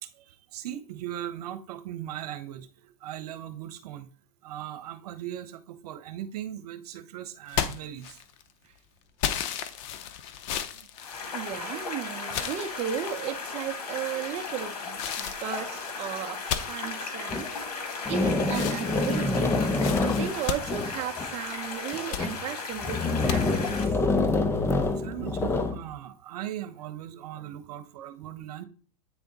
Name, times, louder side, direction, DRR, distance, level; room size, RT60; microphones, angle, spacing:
voice 1, 0.0-4.1 4.4-8.2 10.7-10.9 25.0-28.6, right 12 dB, 75° right, 0.9 m, -39 dB
sound 1, 7.5-8.5 9.2-11.8 12.3-13.3 13.9-14.4 15.0-18.1 18.5-21.5 21.9-22.3 23.3-23.4, left 9 dB, 50° left, 0.7 m, -34 dB
sound 2, 11.0-23.8, left 4 dB, 75° left, 1.8 m, -36 dB
voice 2, 11.3-19.5 20.0-23.8, right 9 dB, 35° right, 0.7 m, -35 dB
sound 3, 17.3-17.4 18.1-21.3 21.9-22.4 22.8-25.8, left 3 dB, 10° left, 0.6 m, -26 dB
8.6 x 3.5 x 4.1 m
hypercardioid pair, 125°, 20 cm